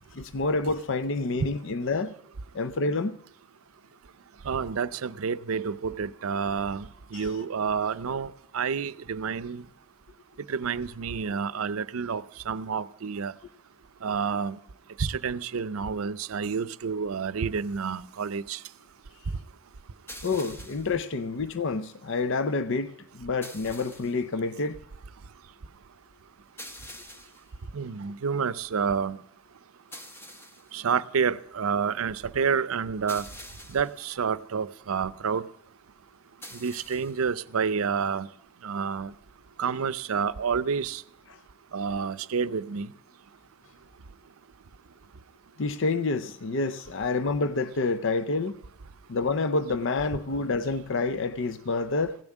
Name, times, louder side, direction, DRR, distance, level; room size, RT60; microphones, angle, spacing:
voice 1, 0.2-2.1 2.5-3.2 7.1-7.3 20.2-24.8 45.6-48.5 49.1-52.2, left 3 dB, 60° left, 0.6 m, -28 dB
voice 2, 4.4-9.6 10.5-13.3 14.0-14.6 15.0-18.6 27.7-29.2 30.7-33.2 33.7-35.4 36.5-38.3 38.6-39.1 39.6-41.0 41.7-42.9, right 6 dB, 85° right, 0.5 m, -29 dB
sound 1, 20.1-21.0 23.4-24.2 26.6-27.5 29.9-30.7 33.1-34.0 36.4-37.2, left 1 dB, 10° left, 1.0 m, -45 dB
16.5 x 7.2 x 9.9 m
head